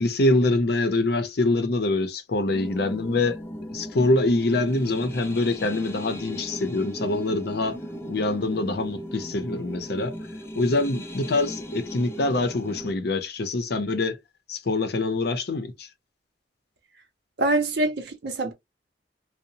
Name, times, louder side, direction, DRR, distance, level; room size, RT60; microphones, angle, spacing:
voice 1, 0.0-3.4 3.7-7.8 8.1-10.1 10.6-14.2 14.5-15.9, left 2 dB, 65° left, 0.6 m, -25 dB
sound 1, 2.5-12.9, equal, 15° left, 0.4 m, -37 dB
voice 2, 17.4-18.5, right 2 dB, 65° right, 0.6 m, -24 dB
2.8 x 2.0 x 2.7 m
head